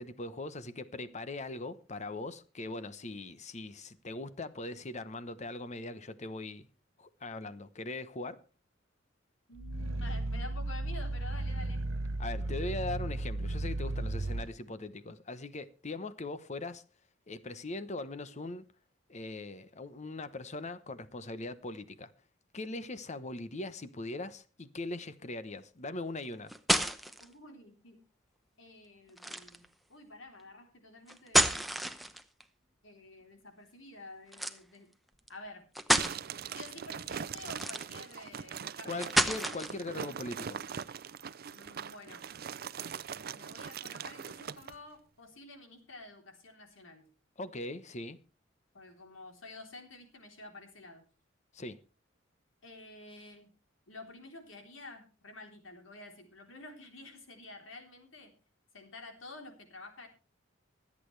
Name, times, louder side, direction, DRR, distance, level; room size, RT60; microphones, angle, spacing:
voice 1, 0.0-6.7 7.0-8.4 12.2-16.8 17.3-18.6 19.1-22.1 22.5-26.5 38.8-40.6 47.4-48.2 51.5-51.8, left 2 dB, 35° left, 0.9 m, -40 dB
voice 2, 9.5-11.9 27.2-28.0 28.6-32.0 32.8-34.9 35.3-35.6 36.5-39.2 41.5-42.2 43.3-47.0 48.7-51.0 52.6-53.5 53.9-58.3 58.7-60.1, left 2 dB, 75° left, 3.6 m, -50 dB
Growling, 9.6-14.5, right 2 dB, 85° right, 0.8 m, -34 dB
sound 1, 26.2-27.2 29.2-29.6 31.1-32.4 34.3-34.6 35.3-35.4 35.7-36.2 37.5-38.1 39.0-39.8, right 1 dB, ahead, 0.8 m, -29 dB
sound 2, 36.0-44.8, right 7 dB, 50° right, 0.5 m, -41 dB
25.0 x 8.5 x 3.3 m
head